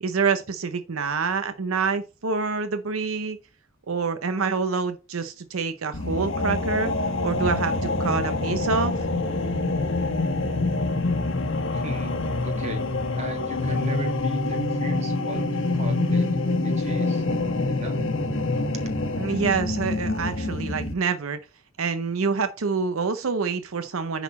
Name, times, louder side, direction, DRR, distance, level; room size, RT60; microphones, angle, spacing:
voice 1, 0.0-3.4 3.9-6.9 7.2-8.9 19.2-21.4 21.8-24.2, right 5 dB, 75° right, 0.7 m, -26 dB
sound 1, 5.9-20.9, left 2 dB, 65° left, 1.1 m, -26 dB
voice 2, 11.7-12.1 12.4-12.8 13.2-15.5 15.7-17.2 17.6-18.0, right 2 dB, 35° right, 1.6 m, -38 dB
9.8 x 4.1 x 4.2 m
head